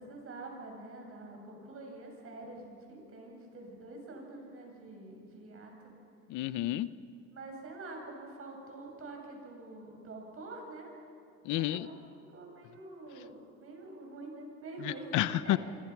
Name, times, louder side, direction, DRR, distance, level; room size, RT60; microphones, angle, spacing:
voice 1, 0.0-5.9 7.3-10.9 11.5-12.0 12.3-15.1 15.4-15.6, right 2 dB, 50° right, 2 dB, 7.3 m, -46 dB
voice 2, 6.3-6.9 11.4-11.9 14.8-15.6, left 15 dB, 80° left, 15 dB, 0.8 m, -30 dB
27.5 x 25.5 x 6.0 m, 2.4 s
cardioid pair, 105°, 30 cm